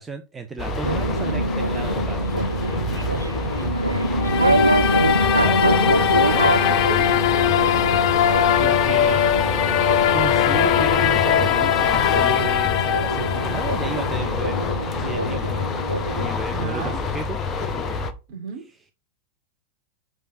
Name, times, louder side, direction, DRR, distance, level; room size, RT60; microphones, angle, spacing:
voice 1, 0.0-2.3 5.4-5.9 8.6-9.3 10.1-14.6 14.9-15.7 16.1-17.4, right 4 dB, 15° right, 0.9 m, -33 dB
sound 1, 0.6-18.1, left 4 dB, 20° left, 1.2 m, -27 dB
sound 2, 0.8-16.3, right 1 dB, 85° right, 0.5 m, -25 dB
sound 3, 4.2-14.2, left 11 dB, 40° left, 0.7 m, -21 dB
voice 2, 6.0-7.6 16.5-17.0 18.3-18.6, right 6 dB, 50° right, 4.0 m, -33 dB
6.0 x 5.3 x 6.2 m
figure-of-eight pair, 90°, 0 cm